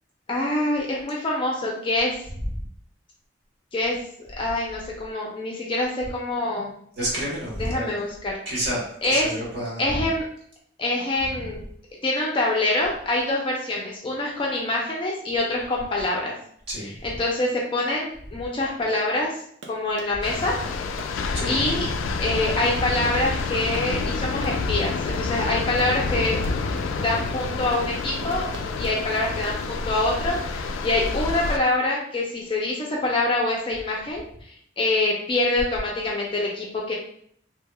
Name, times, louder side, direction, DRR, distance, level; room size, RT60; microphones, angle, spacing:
voice 1, 0.3-2.2 3.7-6.7 7.6-8.7 9.0-9.4 9.8-10.3 10.8-11.6 12.0-16.3 16.8-19.4 19.7-20.6 21.5-21.9 22.2-26.4 27.0-28.5 28.8-36.9, left 2 dB, 25° left, -2 dB, 0.5 m, -25 dB
voice 2, 7.0-7.9 8.5-8.8 9.1-10.0 16.7-16.9 21.3-21.6, right 1 dB, 55° right, -5 dB, 1.2 m, -29 dB
Run, 19.4-29.8, right 2 dB, 75° right, 0.6 m, -43 dB
sound 1, 20.2-31.6, left 4 dB, 90° left, 0.3 m, -28 dB
3.4 x 2.8 x 2.2 m, 0.64 s
head